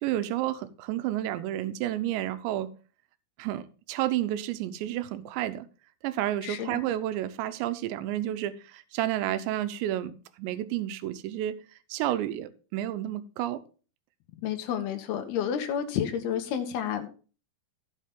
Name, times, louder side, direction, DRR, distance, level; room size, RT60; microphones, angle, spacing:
voice 1, 0.0-2.7 3.4-5.7 6.0-11.6 11.9-13.6, right 13 dB, 85° right, 12 dB, 3.0 m, -31 dB
voice 2, 6.4-6.8 14.4-17.1, left 9 dB, 70° left, 6 dB, 3.0 m, -30 dB
15.5 x 5.7 x 3.6 m, 0.36 s
omnidirectional pair, 5.1 m